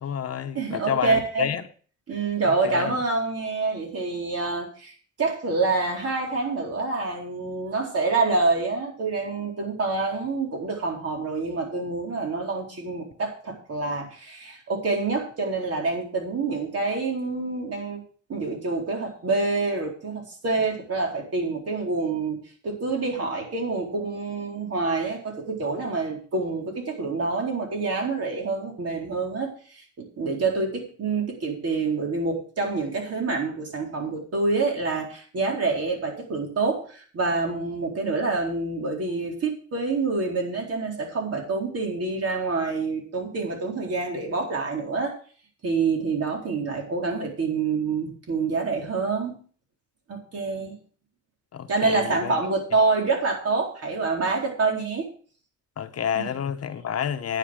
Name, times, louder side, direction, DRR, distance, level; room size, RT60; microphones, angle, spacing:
voice 1, 0.0-1.7 2.4-3.0 51.5-52.3 55.8-57.4, left 8 dB, 55° left, 0.9 m, -29 dB
voice 2, 0.5-1.5 2.1-18.0 18.3-22.4 22.6-45.2 45.6-49.4 50.1-50.8 51.7-55.1 56.2-56.3, right 3 dB, 55° right, 4.2 m, -27 dB
10.0 x 9.5 x 4.9 m
cardioid pair, 130°, 29 cm